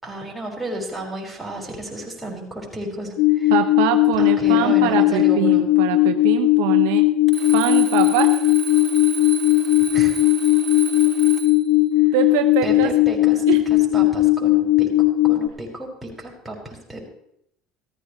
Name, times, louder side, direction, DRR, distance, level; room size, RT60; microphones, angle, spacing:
voice 1, 0.0-3.5 4.2-5.7 9.9-10.1 12.6-17.0, right 1 dB, 5° right, -3 dB, 5.4 m, -33 dB
sound 1, 3.2-15.5, left 17 dB, 75° left, 0.6 m, -17 dB
voice 2, 3.5-7.0 7.5-8.3 12.1-12.9 13.5-13.6, right 13 dB, 80° right, 6 dB, 0.9 m, -23 dB
Alarm, 7.3-11.7, right 8 dB, 30° right, 4.8 m, -32 dB
15.0 x 14.0 x 3.3 m, 0.75 s
supercardioid pair, 85°, 0 cm